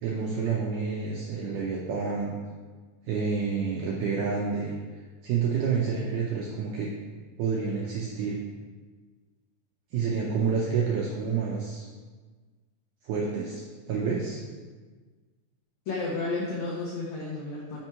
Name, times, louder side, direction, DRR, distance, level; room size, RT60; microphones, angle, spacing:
voice 1, 0.0-2.4 3.1-4.7 5.2-6.9 7.4-8.4 9.9-11.8 13.0-14.4, right 5 dB, 85° right, -3 dB, 1.8 m, -29 dB
voice 2, 15.9-17.8, left 3 dB, 85° left, -5 dB, 1.6 m, -32 dB
6.0 x 4.5 x 4.5 m, 1.4 s
omnidirectional pair, 4.5 m